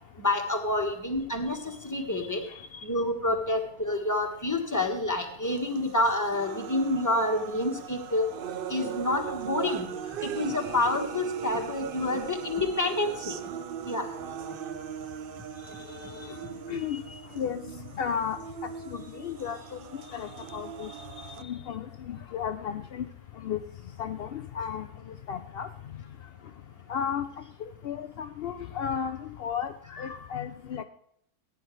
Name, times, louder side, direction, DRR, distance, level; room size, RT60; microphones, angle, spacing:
voice 1, 0.2-2.4 2.8-8.3 8.7-9.9 10.2-13.3 13.9-14.0, left 2 dB, 10° left, 3 dB, 1.4 m, -28 dB
voice 2, 2.2-2.8 15.9-16.4 16.7-17.6 17.9-23.1 23.4-23.6 24.0-25.7 26.9-27.3 27.8-30.8, left 8 dB, 70° left, 9 dB, 0.5 m, -34 dB
sound 1, 5.4-21.4, right 9 dB, 80° right, 0.4 m, -39 dB
15.0 x 9.4 x 3.2 m, 0.73 s
omnidirectional pair, 1.6 m